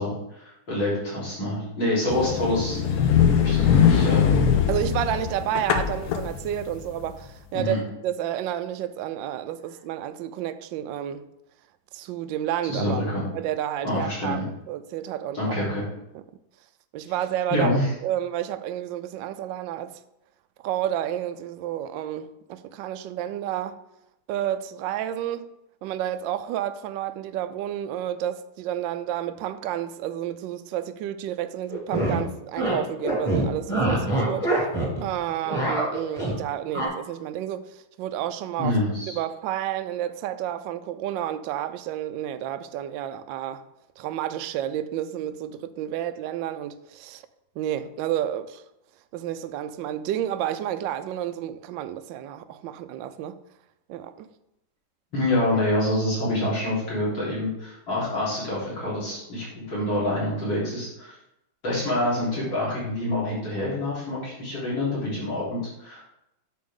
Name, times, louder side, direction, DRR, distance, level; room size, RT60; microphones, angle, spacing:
voice 1, 0.0-2.8 3.4-4.5 7.5-7.8 12.6-13.3 13.8-14.4 15.3-15.8 17.5-17.9 38.6-39.2 55.1-61.2 61.6-66.1, left 1 dB, 60° left, 4.5 m, -26 dB
sound 1, 2.1-7.1, left 8 dB, 85° left, 1.7 m, -21 dB
voice 2, 4.7-11.3 11.9-13.0 13.3-15.6 16.9-17.8 18.0-20.0 20.6-23.8 24.3-25.5 25.8-34.5 35.0-38.8 39.1-43.6 44.0-47.2 47.6-48.6 49.1-53.4 53.9-54.3, right 11 dB, 75° right, 1.1 m, -30 dB
sound 2, 31.7-32.2 32.6-32.8 33.0-35.0 35.3-36.4 36.7-36.9, right 2 dB, 15° left, 2.1 m, -24 dB
8.8 x 6.5 x 3.7 m
omnidirectional pair, 2.3 m